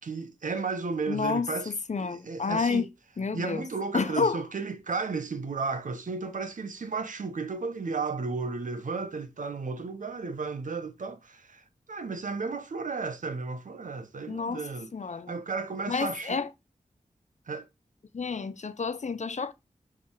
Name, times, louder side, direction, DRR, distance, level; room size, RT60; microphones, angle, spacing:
voice 1, 0.0-1.7 2.0-2.9 3.3-14.9 15.3-16.4 17.5-17.7, right 4 dB, 85° right, 1.1 m, -34 dB
voice 2, 1.1-2.9 3.2-3.6 3.9-4.4 14.3-14.6 14.9-15.4 15.9-16.5 18.1-19.5, left 5 dB, 65° left, 0.9 m, -29 dB
8.6 x 3.6 x 4.8 m
wide cardioid pair, 75°, 13 cm